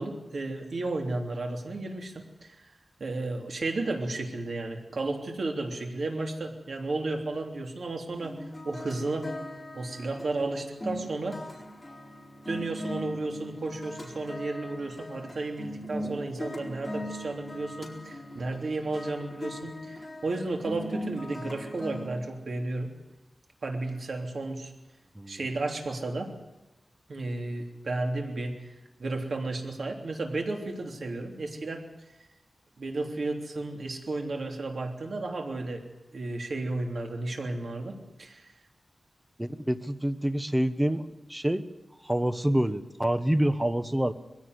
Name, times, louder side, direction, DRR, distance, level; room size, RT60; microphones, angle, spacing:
voice 1, 0.0-2.6 3.0-8.4 8.6-9.3 9.7-11.4 12.5-22.9 23.6-24.7 25.3-26.3 27.1-28.5 29.0-31.8 32.8-35.8 36.1-38.5, right 2 dB, 70° right, 2 dB, 3.2 m, -33 dB
sound 1, 8.2-22.1, left 1 dB, 20° left, 4.4 m, -40 dB
voice 2, 39.4-41.7 42.0-44.1, right 1 dB, 10° right, 11 dB, 1.2 m, -27 dB
21.5 x 16.5 x 8.0 m, 1.1 s
wide cardioid pair, 95°, 0 cm